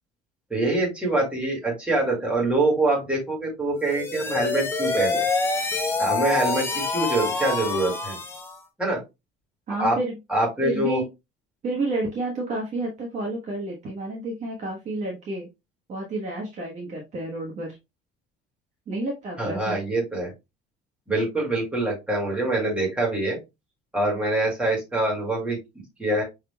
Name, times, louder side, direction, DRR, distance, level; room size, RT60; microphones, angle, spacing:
voice 1, 0.5-5.3 6.0-8.2 8.8-9.0 9.8-10.0 10.3-11.0 19.4-20.3 21.1-23.4 23.9-26.2, right 2 dB, 5° right, -4 dB, 2.0 m, -25 dB
sound 1, 3.8-8.6, left 3 dB, 10° left, 0.5 m, -26 dB
voice 2, 9.7-10.2 10.6-11.1 11.6-15.5 15.9-17.8 18.9-19.8, right 2 dB, 35° right, -1 dB, 1.1 m, -30 dB
5.6 x 3.7 x 2.2 m, 0.23 s
cardioid pair, 175°, 20 cm